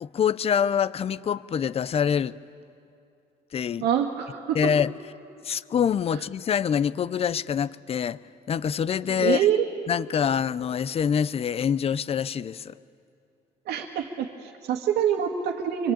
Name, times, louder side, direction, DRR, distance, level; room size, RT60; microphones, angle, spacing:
voice 1, 0.0-2.4 3.5-3.9 4.5-4.9 5.4-8.2 8.5-9.5 9.9-12.7, left 8 dB, 35° left, 0.6 m, -25 dB
voice 2, 3.8-4.6 6.1-6.2 9.1-9.7 13.7-15.9, right 9 dB, 90° right, 1.8 m, -26 dB
26.0 x 24.0 x 8.9 m
cardioid pair, 110°, 17 cm